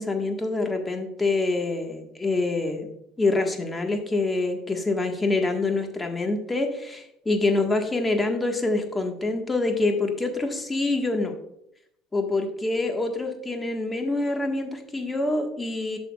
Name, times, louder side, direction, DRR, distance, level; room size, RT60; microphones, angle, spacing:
voice 1, 0.0-2.9 3.2-11.3 12.1-16.0, left 2 dB, 20° left, 4 dB, 1.6 m, -26 dB
11.0 x 6.9 x 2.4 m, 0.76 s
hypercardioid pair, 65°, 0 cm